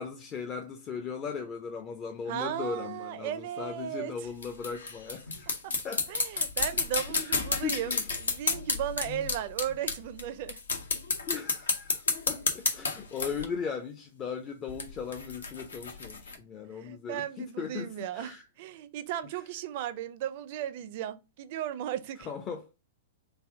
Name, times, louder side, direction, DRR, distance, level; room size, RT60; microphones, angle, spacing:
voice 1, 0.0-5.6 5.8-6.0 7.1-8.1 9.1-9.3 11.3-18.4 22.2-22.7, left 6 dB, 30° left, 0.4 m, -38 dB
voice 2, 2.3-4.3 5.6-5.7 6.1-7.9 8.2-10.6 16.7-22.3, right 11 dB, 50° right, 0.4 m, -36 dB
sound 1, 4.3-10.2 10.5-13.4 14.7-16.4, left 4 dB, 80° left, 0.7 m, -31 dB
3.3 x 2.5 x 3.5 m
figure-of-eight pair, 110°, 0 cm